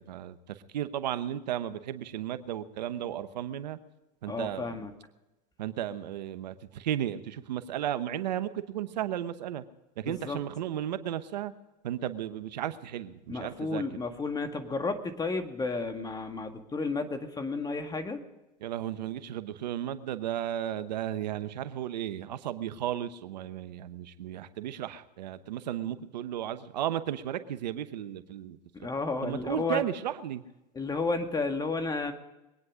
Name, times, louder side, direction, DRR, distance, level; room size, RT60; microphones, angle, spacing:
voice 1, 0.0-3.8 4.2-4.8 5.6-9.6 10.0-11.5 11.8-13.8 18.6-28.6 29.2-30.4, right 11 dB, 85° right, 12 dB, 1.0 m, -34 dB
voice 2, 4.3-4.9 10.0-10.4 13.3-18.2 28.7-29.8 30.8-32.1, left 3 dB, 20° left, 6 dB, 1.9 m, -32 dB
22.5 x 9.8 x 5.0 m, 1.0 s
hypercardioid pair, 100°, 21 cm